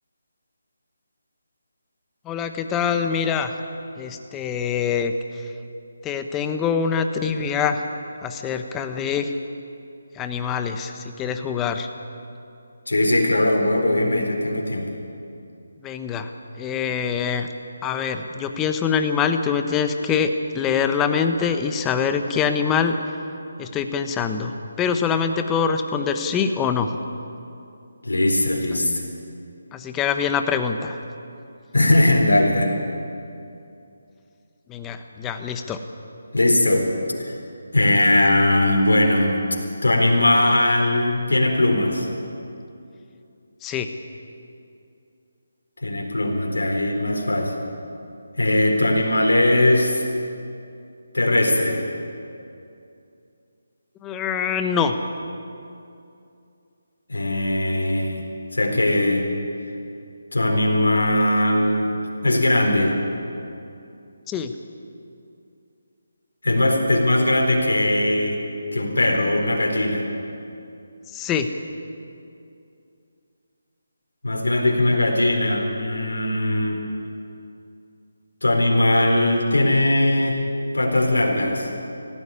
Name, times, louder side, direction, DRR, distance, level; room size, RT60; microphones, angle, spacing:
voice 1, 2.2-3.5 4.0-5.5 6.0-7.8 8.2-9.3 10.1-11.9 15.8-16.3 16.6-17.5 17.8-23.0 23.6-26.9 29.7-31.0 34.7-35.8 43.6-43.9 54.0-55.0 64.3-64.5 71.1-71.5, left 6 dB, 15° left, 7 dB, 1.1 m, -24 dB
voice 2, 12.9-14.9 28.0-29.0 31.7-32.7 36.3-36.9 37.2-37.3 37.7-39.4 39.8-42.1 45.8-47.5 48.4-50.0 51.1-51.8 57.1-58.3 58.5-59.3 60.3-61.9 62.2-63.0 66.4-68.4 68.7-70.1 74.2-76.8 78.4-80.4 80.7-81.7, left 1 dB, 85° left, 0 dB, 4.3 m, -20 dB
18.5 x 15.0 x 9.7 m, 2.6 s
figure-of-eight pair, 155°, 0 cm